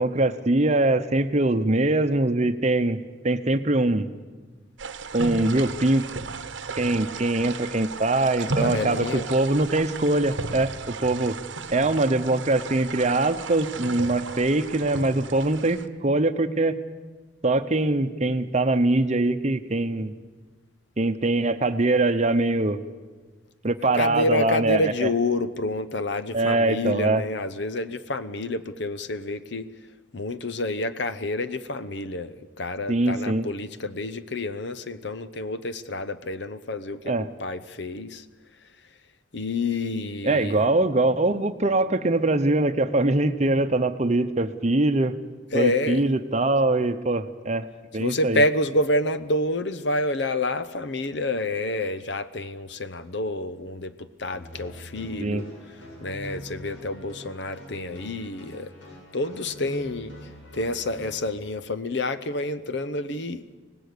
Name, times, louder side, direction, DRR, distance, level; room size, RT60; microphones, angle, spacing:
voice 1, 0.0-4.1 5.1-6.0 6.8-11.4 11.7-16.8 17.4-20.1 21.0-22.8 23.6-25.1 26.3-27.2 32.9-33.5 37.1-37.3 40.2-45.2 45.5-47.7 47.9-48.4 55.2-55.4, right 2 dB, 35° right, 10 dB, 0.9 m, -23 dB
sound 1, 4.8-15.9, right 4 dB, 70° right, 1.0 m, -35 dB
voice 2, 8.6-9.3 23.9-29.7 30.1-37.1 37.4-38.2 39.3-40.6 45.5-46.0 48.0-55.5 56.0-58.7 59.1-60.1 60.5-63.4, left 2 dB, 60° left, 13 dB, 0.9 m, -28 dB
sound 2, 54.3-61.2, equal, 80° left, 7.5 m, -44 dB
25.0 x 18.5 x 6.8 m, 1.3 s
head